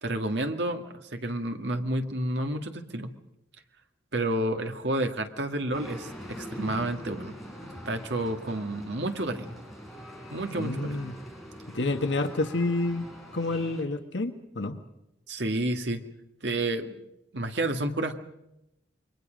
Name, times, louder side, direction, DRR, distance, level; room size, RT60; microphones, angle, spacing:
voice 1, 0.0-3.1 4.1-7.3 7.6-9.6 10.3-11.1 15.3-16.0 16.4-17.0 17.3-18.2, right 1 dB, 75° right, 5 dB, 2.0 m, -30 dB
sound 1, 5.7-13.8, equal, ahead, 4.3 m, -43 dB
voice 2, 10.6-11.1 11.7-13.1 13.3-14.8, left 2 dB, 80° left, 6 dB, 1.5 m, -29 dB
28.5 x 23.0 x 5.2 m, 0.84 s
head